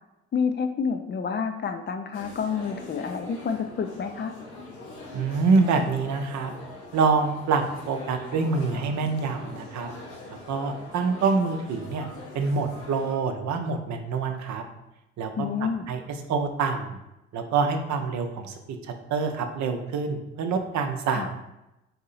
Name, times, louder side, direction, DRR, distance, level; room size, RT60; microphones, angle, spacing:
voice 1, 0.3-4.3 15.4-15.9 21.1-21.3, left 6 dB, 30° left, 7 dB, 0.5 m, -29 dB
sound 1, 2.1-13.1, left 2 dB, 85° left, 1.1 m, -42 dB
voice 2, 5.1-6.5 6.9-9.9 10.5-12.1 12.3-14.6 15.2-16.0 16.3-17.0 17.3-21.3, right 4 dB, 55° right, 5 dB, 0.7 m, -26 dB
4.2 x 2.7 x 4.1 m, 0.93 s
hypercardioid pair, 55°, 33 cm